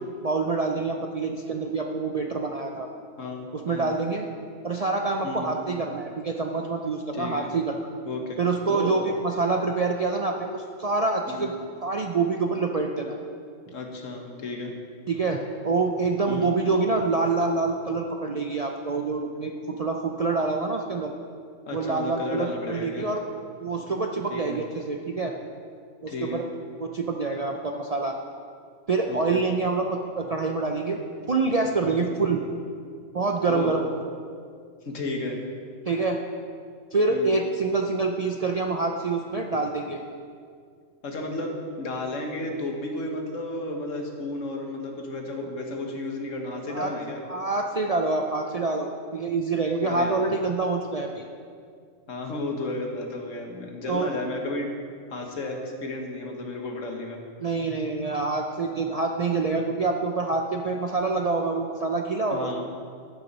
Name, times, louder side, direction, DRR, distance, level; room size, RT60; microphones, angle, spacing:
voice 1, 0.2-2.9 3.5-4.3 4.6-7.8 8.4-11.5 11.8-13.2 15.1-21.1 21.7-23.2 23.6-25.4 26.0-26.4 26.8-28.2 28.9-31.0 31.3-32.4 33.1-33.9 35.9-36.2 36.9-40.0 46.7-46.9 47.3-51.3 52.5-52.6 53.9-54.1 57.4-62.6, right 3 dB, 45° right, 2 dB, 0.5 m, -26 dB
voice 2, 3.2-3.9 5.2-5.5 7.1-7.5 8.1-8.4 8.7-9.0 11.3-11.5 13.7-14.8 16.3-16.5 21.7-23.1 24.3-24.6 26.1-26.4 29.1-29.4 31.9-32.1 33.5-33.7 34.9-35.4 37.1-37.4 41.0-47.2 49.8-50.2 52.1-54.7 55.1-57.2 62.3-62.6, left 2 dB, 75° left, 2 dB, 1.7 m, -33 dB
13.0 x 7.0 x 5.4 m, 2.2 s
omnidirectional pair, 1.3 m